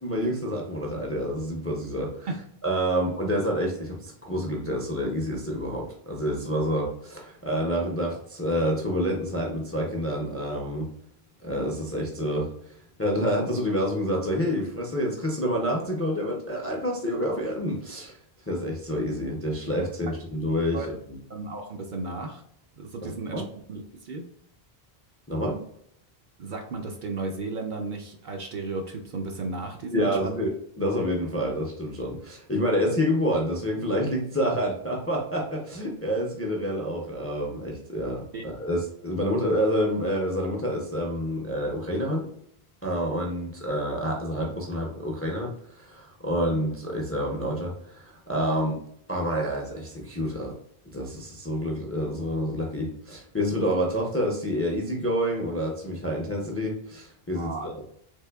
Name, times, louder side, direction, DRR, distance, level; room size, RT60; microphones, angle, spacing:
voice 1, 0.0-2.3 2.6-10.9 11.4-18.2 18.4-21.0 23.3-23.4 25.3-25.6 29.9-30.5 30.8-42.3 42.8-48.8 49.1-50.6 50.9-57.8, equal, 20° left, -1 dB, 0.4 m, -28 dB
voice 2, 21.3-22.4 22.7-23.4 23.7-24.3 26.4-30.4 38.3-38.4 57.3-57.7, right 3 dB, 60° right, 3 dB, 0.6 m, -34 dB
3.5 x 3.2 x 2.2 m, 0.69 s
omnidirectional pair, 1.0 m